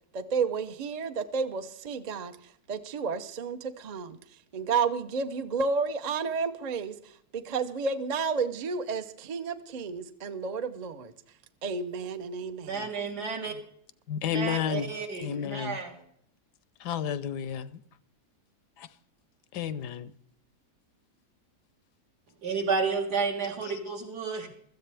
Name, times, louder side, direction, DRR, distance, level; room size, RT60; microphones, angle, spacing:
voice 1, 0.1-2.3 2.7-4.2 4.5-6.9 7.3-11.1 11.6-12.8, right 5 dB, 55° right, 0.4 m, -31 dB
voice 2, 12.6-13.5 14.3-16.0 22.4-24.5, right 5 dB, 75° right, 2.5 m, -31 dB
voice 3, 14.1-14.9 15.2-15.8 16.8-17.8 18.8-18.9 19.5-20.1 23.6-23.7, left 8 dB, 85° left, 1.3 m, -31 dB
16.5 x 13.5 x 3.4 m
omnidirectional pair, 1.7 m